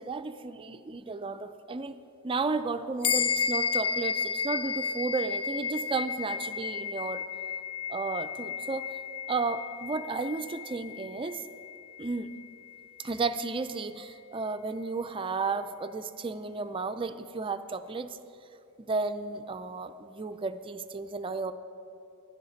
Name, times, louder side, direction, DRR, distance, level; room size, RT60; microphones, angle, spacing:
voice 1, 0.0-2.0 2.2-7.2 7.9-8.8 9.3-11.4 12.0-12.3 13.0-18.2 18.8-21.5, right 4 dB, 25° right, 10 dB, 0.4 m, -33 dB
sound 1, 3.0-12.8, left 6 dB, 75° left, 0.5 m, -33 dB
15.5 x 11.5 x 4.0 m, 2.9 s
head